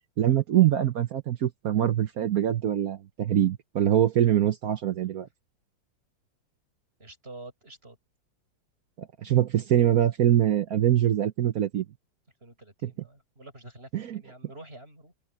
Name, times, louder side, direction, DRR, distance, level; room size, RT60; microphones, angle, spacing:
voice 1, 0.0-5.3 9.0-11.8 12.8-12.9 13.9-14.2, right 11 dB, 60° right, 1.1 m, -24 dB
voice 2, 7.0-8.0 12.4-15.1, right 2 dB, 30° right, 8.3 m, -47 dB
omnidirectional pair, 2.1 m